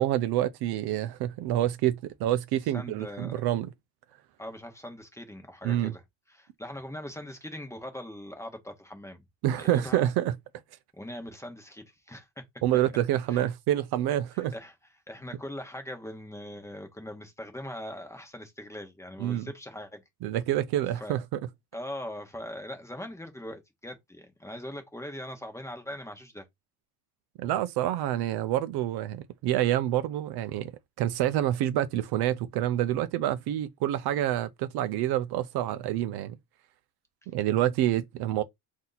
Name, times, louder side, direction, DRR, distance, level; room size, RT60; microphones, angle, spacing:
voice 1, 0.0-3.7 5.6-5.9 9.4-10.3 12.6-14.5 19.2-19.5 20.2-21.4 27.4-30.7 31.0-36.4 37.3-38.4, right 13 dB, 60° right, 0.5 m, -27 dB
voice 2, 2.7-3.4 4.4-6.0 6.3-9.2 9.6-10.1 10.9-12.4 13.3-13.5 14.5-14.7 15.1-20.0 21.0-21.1 21.7-26.5, left 1 dB, 5° left, 1.0 m, -41 dB
4.0 x 2.8 x 3.9 m
cardioid pair, 115°, 44 cm